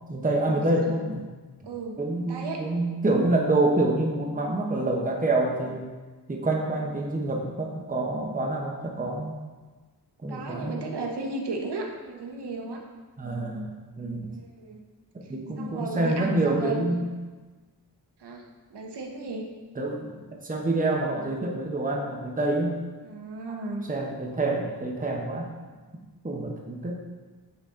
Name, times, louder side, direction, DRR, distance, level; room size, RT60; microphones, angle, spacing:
voice 1, 0.1-1.2 2.0-5.9 6.3-9.4 10.2-10.8 13.2-13.7 14.0-14.3 15.1-17.1 19.7-20.1 20.4-22.8 23.9-25.5 26.2-27.0, right 2 dB, 20° right, 0 dB, 0.9 m, -27 dB
voice 2, 1.6-2.6 10.3-12.8 14.3-14.9 15.6-16.8 18.2-18.4 18.7-19.5 23.0-23.9, right 3 dB, 75° right, 1 dB, 1.0 m, -35 dB
8.5 x 4.1 x 3.7 m, 1.3 s
wide cardioid pair, 105°, 41 cm